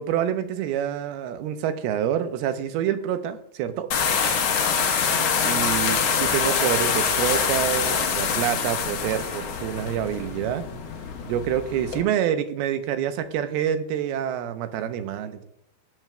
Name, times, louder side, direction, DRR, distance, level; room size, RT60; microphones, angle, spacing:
voice 1, 0.0-3.9 5.4-10.6 11.3-15.4, right 10 dB, 85° right, 9 dB, 2.6 m, -27 dB
sound 1, 3.9-12.0, left 6 dB, 85° left, 1.3 m, -25 dB
18.5 x 7.4 x 2.2 m, 0.78 s
omnidirectional pair, 4.5 m